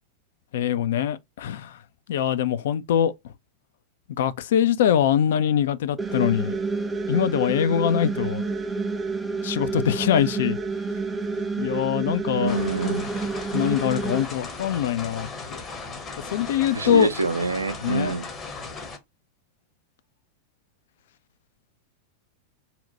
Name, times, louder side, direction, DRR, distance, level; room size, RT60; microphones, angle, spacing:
voice 1, 0.5-1.8 2.1-3.1 4.2-6.6 7.1-8.4 9.4-10.6 11.6-12.6 13.5-15.6 16.3-17.1 17.8-18.1, left 10 dB, 55° left, 0.3 m, -23 dB
sound 1, 6.0-14.2, right 4 dB, 15° right, 0.4 m, -29 dB
voice 2, 12.3-13.1 16.7-18.3, right 3 dB, 80° right, 0.4 m, -26 dB
sound 2, 12.5-19.0, left 4 dB, 25° left, 0.7 m, -37 dB
2.8 x 2.1 x 3.9 m
figure-of-eight pair, 90°, 0 cm